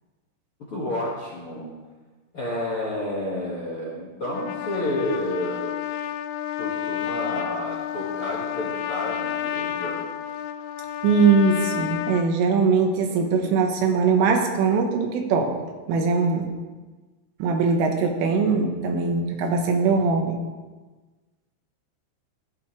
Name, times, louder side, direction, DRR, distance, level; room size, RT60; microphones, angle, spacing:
voice 1, 0.7-1.7 2.3-5.7 6.6-10.0, left 1 dB, 45° left, -5 dB, 1.7 m, -30 dB
Trumpet, 4.2-12.3, left 11 dB, 85° left, 3.2 m, -30 dB
voice 2, 11.0-15.5 15.9-16.5 17.4-20.4, right 4 dB, 80° right, 3 dB, 3.9 m, -21 dB
16.0 x 13.5 x 3.4 m, 1.3 s
omnidirectional pair, 5.8 m